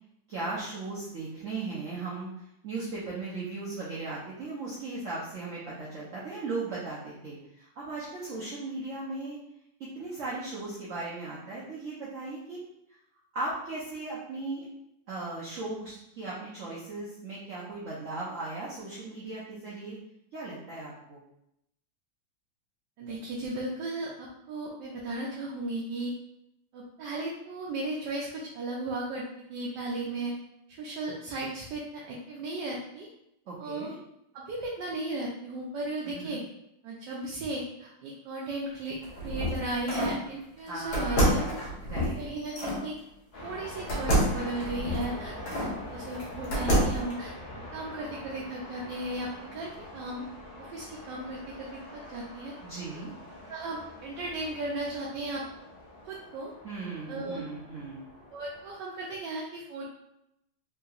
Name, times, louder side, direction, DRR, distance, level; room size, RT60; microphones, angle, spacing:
voice 1, 0.3-2.3 2.6-9.4 9.9-12.6 13.3-14.6 15.1-20.0 20.3-21.2 33.5-34.0 36.1-36.4 40.6-42.2 52.6-53.1 56.6-58.1, right 3 dB, 60° right, -7 dB, 0.9 m, -37 dB
voice 2, 23.0-26.1 26.7-29.2 29.5-30.3 30.7-33.1 33.6-33.9 34.3-36.4 36.8-38.9 39.2-41.4 42.2-42.9 43.4-47.3 47.7-50.2 50.6-51.7 51.9-52.5 53.5-55.4 56.0-56.5 57.1-57.4 58.3-59.8, right 2 dB, 75° right, -4 dB, 1.2 m, -35 dB
sound 1, 38.9-40.2 40.9-42.8 43.9-45.7 46.2-47.1, equal, 65° left, 1.5 m, -28 dB
sound 2, 43.3-58.7, left 1 dB, 45° left, 0.7 m, -44 dB
3.6 x 2.9 x 2.4 m, 0.81 s
omnidirectional pair, 2.0 m